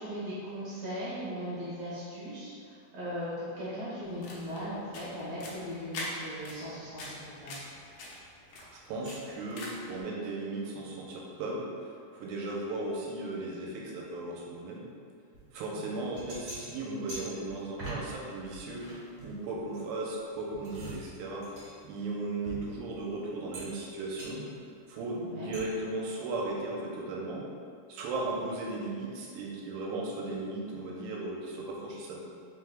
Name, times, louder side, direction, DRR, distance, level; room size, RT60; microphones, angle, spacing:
voice 1, 0.0-7.6 15.7-16.0 25.2-25.6, equal, 65° right, -11 dB, 1.6 m, -38 dB
sound 1, 4.0-10.0, left 2 dB, 75° left, 1.9 m, -44 dB
voice 2, 8.7-14.9 15.5-24.5 24.9-27.5 27.9-32.2, right 2 dB, 90° right, -3 dB, 2.3 m, -36 dB
sound 2, 15.3-15.5 15.9-18.1 18.4-19.9 20.3-23.1 23.5-23.9 24.2-24.3 25.5-25.6, right 2 dB, 45° right, 1.8 m, -44 dB
5.1 x 3.4 x 2.3 m, 2.3 s
omnidirectional pair, 4.0 m